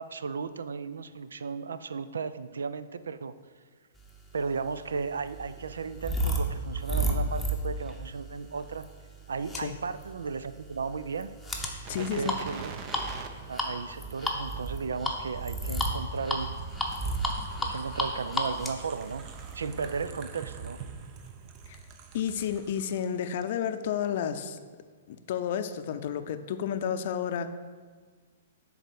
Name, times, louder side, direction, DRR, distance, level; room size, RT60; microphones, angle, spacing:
voice 1, 0.0-3.4 4.3-8.9 9.3-11.3 12.0-12.7 13.5-16.5 17.6-20.8, right 5 dB, 85° right, 13 dB, 0.4 m, -35 dB
sound 1, 4.4-20.1, equal, 5° left, 0.9 m, -33 dB
sound 2, 11.8-23.1 23.4-23.5, right 5 dB, 35° right, 0.6 m, -43 dB
voice 2, 11.9-12.3 21.7-21.8 22.1-24.6 25.1-27.5, left 8 dB, 55° left, 10 dB, 0.5 m, -31 dB
6.7 x 4.0 x 6.4 m, 1.5 s
hypercardioid pair, 130°, 0 cm